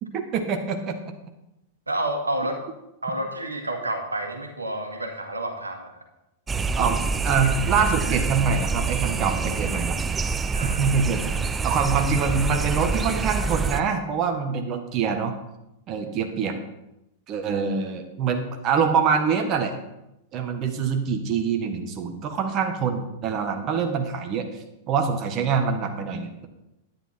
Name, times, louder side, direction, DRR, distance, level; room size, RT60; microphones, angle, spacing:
voice 1, 0.0-1.0 6.7-10.0 10.6-11.3 11.6-15.3 15.9-16.5 17.3-19.7 20.3-24.4 24.9-26.5, right 6 dB, 35° right, 5 dB, 1.4 m, -25 dB
voice 2, 1.9-2.6 3.0-5.9 10.5-10.9, right 1 dB, 85° right, 4 dB, 1.7 m, -29 dB
sound 1, 6.5-13.8, right 4 dB, 15° right, 0.6 m, -26 dB
11.0 x 9.9 x 4.4 m, 0.90 s
figure-of-eight pair, 95°, 0 cm